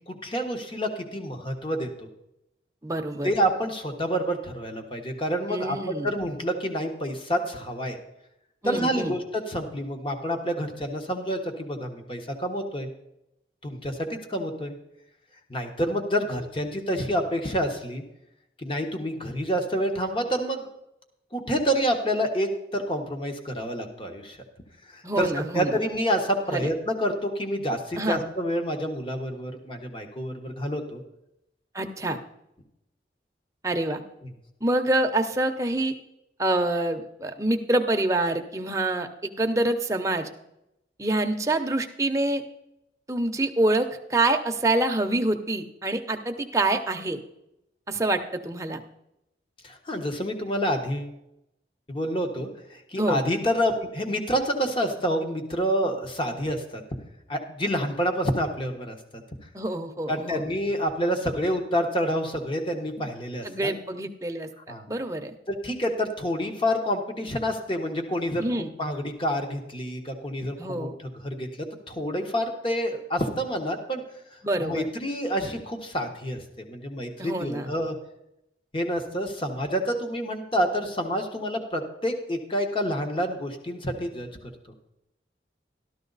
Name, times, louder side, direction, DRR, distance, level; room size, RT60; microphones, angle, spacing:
voice 1, 0.1-2.1 3.2-8.0 8.6-12.9 13.6-14.7 15.5-18.0 18.6-20.7 21.3-24.4 24.9-31.0 49.6-51.1 51.9-56.8 57.3-59.2 60.1-63.7 64.7-64.9 65.5-68.4 68.8-74.0 74.3-77.9 78.7-84.3, equal, 30° left, 5 dB, 1.2 m, -28 dB
voice 2, 2.8-3.3 5.5-6.1 8.6-9.1 25.0-25.8 26.5-26.7 28.0-28.2 31.7-32.2 33.6-34.0 34.6-35.9 36.4-39.1 39.4-40.3 41.0-42.4 43.1-47.2 47.9-48.8 53.0-53.2 59.5-60.4 63.4-64.5 64.9-65.3 68.4-68.7 70.6-70.9 74.4-74.9 77.2-77.7, right 2 dB, 15° right, 4 dB, 0.8 m, -26 dB
13.0 x 12.5 x 4.0 m, 0.85 s
head